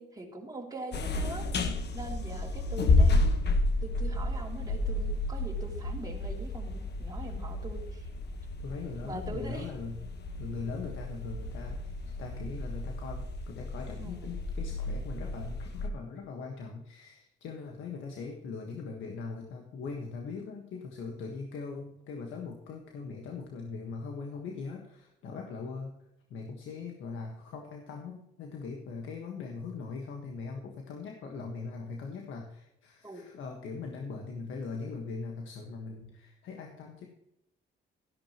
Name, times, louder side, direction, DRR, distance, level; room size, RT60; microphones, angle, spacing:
voice 1, 0.0-3.2 3.8-8.1 9.0-9.7 14.0-14.3 33.0-33.3, right 1 dB, 20° right, -1 dB, 2.9 m, -42 dB
sound 1, 0.9-15.9, left 2 dB, 55° left, 1.3 m, -31 dB
voice 2, 8.6-10.0 10.4-25.9 26.3-37.1, left 4 dB, 80° left, 2 dB, 1.5 m, -40 dB
12.5 x 11.0 x 3.0 m, 0.82 s
cardioid pair, 90°, 20 cm